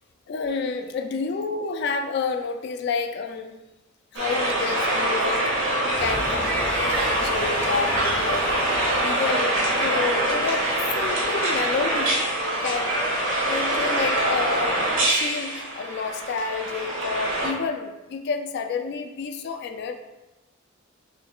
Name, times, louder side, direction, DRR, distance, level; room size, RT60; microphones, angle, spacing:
voice 1, 0.3-3.6 4.1-5.5 6.0-8.4 9.0-10.7 11.0-12.2 12.6-12.9 13.4-20.0, left 5 dB, 55° left, 6 dB, 0.3 m, -29 dB
sound 1, 4.1-17.5, right 1 dB, 85° right, 1.3 m, -24 dB
sound 2, 5.9-11.1, equal, 5° left, 0.5 m, -35 dB
6.4 x 3.1 x 2.2 m, 1.0 s
head